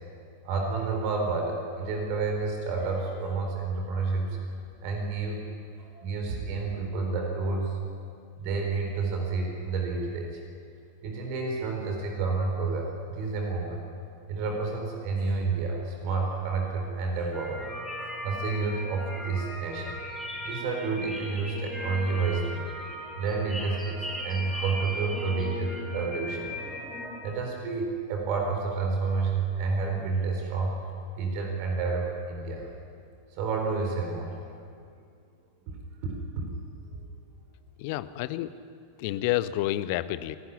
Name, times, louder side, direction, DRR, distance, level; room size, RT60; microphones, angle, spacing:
voice 1, 0.4-4.4 4.8-5.4 5.8-7.8 8.4-10.4 11.0-13.8 14.3-17.7 18.0-20.0 20.4-22.7 23.2-26.5 27.2-30.7 31.1-32.7 33.4-34.3 35.7-35.8 36.0-36.5 36.9-37.1, right 4 dB, 45° right, 2 dB, 4.3 m, -30 dB
sound 1, 17.3-27.2, left 1 dB, ahead, 4.3 m, -37 dB
voice 2, 37.8-38.5 39.0-40.4, left 15 dB, 45° left, 15 dB, 0.8 m, -29 dB
27.5 x 12.0 x 9.9 m, 2.3 s
figure-of-eight pair, 90°, 0 cm